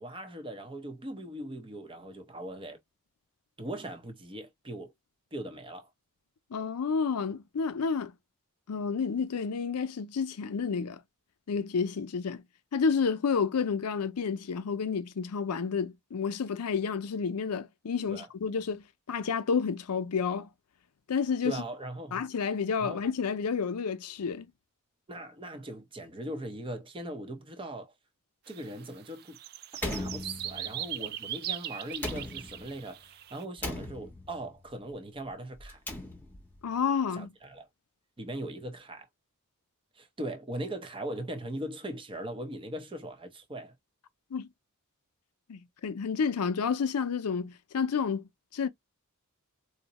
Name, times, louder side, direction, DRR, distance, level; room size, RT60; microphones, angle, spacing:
voice 1, 0.0-2.8 3.6-4.9 5.3-5.9 18.1-18.3 21.4-22.2 22.8-23.0 25.1-27.9 28.5-29.4 29.8-35.8 37.1-37.7 38.2-39.1 40.0-43.7, right 1 dB, 25° right, 0.7 m, -40 dB
voice 2, 6.5-8.1 8.7-11.0 11.5-12.4 12.7-20.5 21.1-21.6 22.1-24.5 36.6-37.3 44.3-44.5 45.5-48.7, left 5 dB, 85° left, 0.5 m, -30 dB
sound 1, 28.5-28.7 29.0-33.4, right 12 dB, 45° right, 0.3 m, -39 dB
Slam, 29.8-30.9 31.9-32.8 33.6-34.5 35.6-36.6, left 2 dB, 10° left, 0.9 m, -38 dB
2.7 x 2.1 x 4.0 m
head